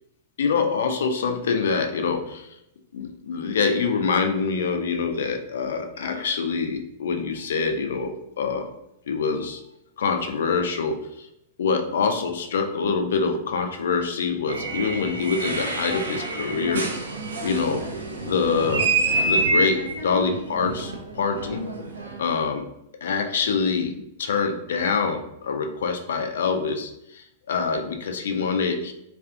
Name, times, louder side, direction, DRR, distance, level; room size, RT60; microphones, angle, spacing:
voice 1, 0.4-2.5 2.9-8.7 9.1-9.6 10.0-11.3 11.6-17.0 17.4-17.9 18.2-18.9 19.3-21.7 22.2-22.6 23.0-28.9, left 5 dB, 65° left, 5 dB, 0.4 m, -25 dB
sound 1, 14.5-22.2, right 3 dB, 75° right, 0.4 m, -27 dB
2.4 x 2.3 x 2.5 m, 0.79 s
figure-of-eight pair, 100°, 0 cm